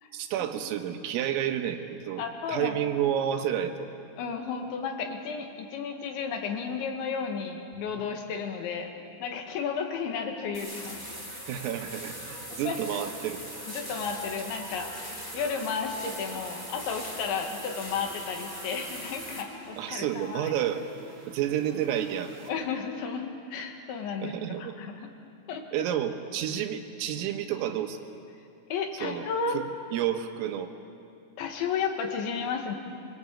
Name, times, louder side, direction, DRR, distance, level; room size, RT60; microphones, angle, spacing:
voice 1, 0.1-2.2 2.5-3.9 11.5-13.5 19.8-20.8 21.3-22.3 24.2-24.7 25.7-28.0 29.0-29.3 29.5-29.7 29.9-30.7, right 10 dB, 85° right, 6 dB, 4.0 m, -30 dB
voice 2, 2.2-2.8 4.2-8.9 9.2-11.0 12.7-12.8 13.7-20.5 22.5-23.2 23.5-25.1 25.5-25.7 28.7-29.6 31.4-32.8, left 6 dB, 70° left, 4 dB, 4.1 m, -33 dB
sound 1, 7.7-22.5, right 3 dB, 55° right, 1.3 m, -50 dB
sound 2, 10.5-19.4, equal, 10° left, 1.3 m, -41 dB
25.5 x 23.0 x 8.6 m, 2.5 s
omnidirectional pair, 5.8 m